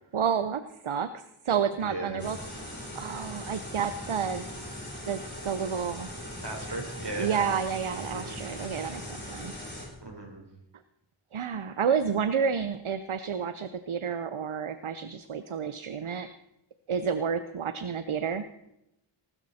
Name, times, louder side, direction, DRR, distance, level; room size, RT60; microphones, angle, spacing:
voice 1, 0.1-4.4 5.1-6.1 7.2-9.5 11.3-16.3 16.9-18.5, right 7 dB, 80° right, 11 dB, 0.8 m, -30 dB
voice 2, 1.8-2.3 6.4-7.4 8.1-8.3 10.0-10.4 16.1-16.2, right 2 dB, 55° right, 2 dB, 4.4 m, -37 dB
sound 1, 2.2-9.9, left 1 dB, 20° left, 6.9 m, -40 dB
19.5 x 13.0 x 4.2 m, 0.86 s
wide cardioid pair, 45°, 48 cm